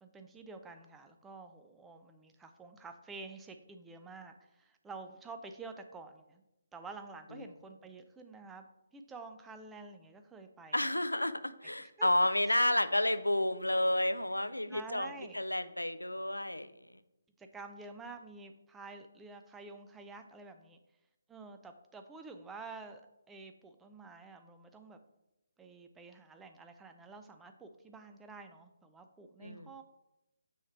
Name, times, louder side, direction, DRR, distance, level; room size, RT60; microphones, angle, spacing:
voice 1, 0.0-6.4 6.7-8.7 8.9-10.9 11.8-12.1 12.5-12.6 14.7-15.4 17.4-20.8 21.3-23.0 23.3-25.0 25.6-29.8, right 3 dB, 10° right, 6 dB, 0.4 m, -49 dB
voice 2, 10.7-16.7 29.4-29.7, left 1 dB, 85° left, 12 dB, 0.4 m, -31 dB
6.3 x 3.1 x 5.6 m, 0.90 s
figure-of-eight pair, 145°, 0 cm